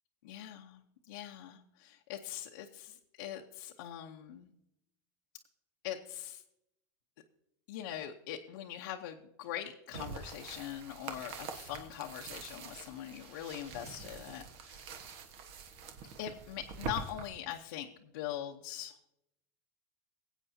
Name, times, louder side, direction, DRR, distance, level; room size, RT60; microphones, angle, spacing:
voice 1, 0.2-0.8 1.1-4.5 5.8-6.4 7.7-14.9 16.2-18.9, left 11 dB, 80° left, 0 dB, 0.9 m, -42 dB
sound 1, 9.9-17.3, right 5 dB, 60° right, 1.3 m, -45 dB
23.0 x 8.2 x 2.7 m, 0.82 s
supercardioid pair, 120°, 11 cm